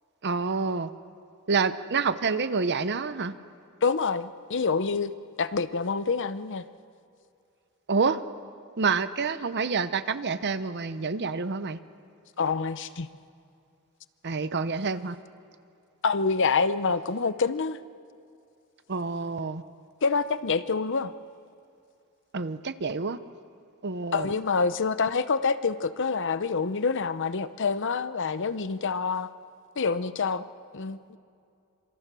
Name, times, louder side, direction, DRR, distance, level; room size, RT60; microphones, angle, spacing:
voice 1, 0.2-0.9 1.5-3.3 7.9-8.2 8.8-11.8 14.2-15.2 18.9-19.6 22.3-23.2 23.8-24.3, right 4 dB, 50° right, 13 dB, 0.9 m, -28 dB
voice 2, 3.8-6.6 12.4-13.1 16.0-17.8 20.0-21.1 24.1-29.3 29.8-30.4 30.7-31.2, left 4 dB, 55° left, 13 dB, 0.8 m, -27 dB
26.0 x 25.5 x 6.2 m, 2.5 s
head